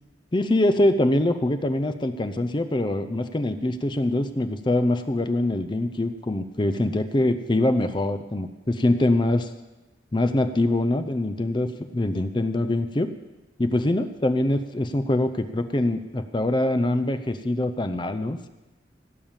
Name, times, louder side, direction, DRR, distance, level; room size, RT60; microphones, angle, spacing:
voice 1, 0.3-9.5 10.1-13.1 13.6-18.5, left 1 dB, 25° left, 10 dB, 0.5 m, -24 dB
17.0 x 7.3 x 7.3 m, 1.1 s
head